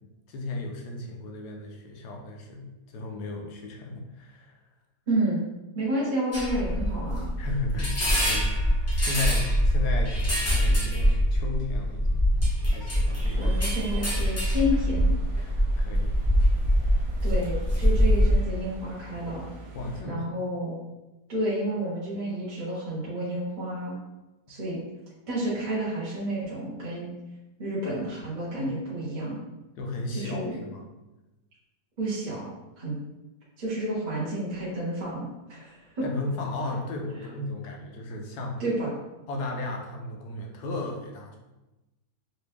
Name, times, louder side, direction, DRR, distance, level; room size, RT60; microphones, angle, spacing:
voice 1, 0.3-2.7 2.9-4.6 7.4-8.0 8.3-8.5 9.0-10.1 10.5-12.3 12.7-13.5 15.4-16.1 19.7-20.3 29.8-30.9 36.0-38.6 39.3-41.4, left 2 dB, 80° left, 1 dB, 1.2 m, -34 dB
voice 2, 5.1-5.4 5.7-7.3 13.4-15.0 17.2-19.5 20.0-20.8 21.3-23.9 24.5-24.8 25.3-27.2 27.6-29.4 30.1-30.6 32.0-32.5 32.8-32.9 33.6-36.0 38.6-38.9, right 1 dB, 30° right, -8 dB, 1.1 m, -30 dB
sound 1, 6.3-18.4, equal, 15° left, 0.5 m, -24 dB
sound 2, 13.1-20.0, right 1 dB, 85° right, 1.4 m, -44 dB
4.0 x 2.6 x 3.3 m, 1.0 s
omnidirectional pair, 1.8 m